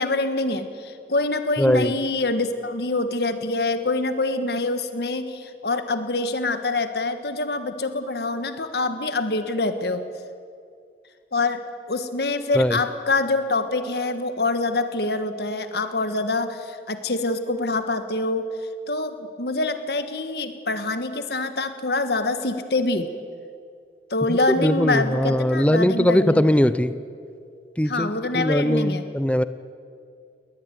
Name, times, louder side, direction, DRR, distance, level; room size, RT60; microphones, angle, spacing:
voice 1, 0.0-10.0 11.3-18.5 18.9-23.1 24.1-26.5 27.9-29.0, left 2 dB, 65° left, 9 dB, 1.6 m, -25 dB
voice 2, 1.6-1.9 12.5-12.8 24.3-26.9 27.8-29.4, equal, 5° left, 13 dB, 0.7 m, -20 dB
20.5 x 20.0 x 9.4 m, 2.3 s
head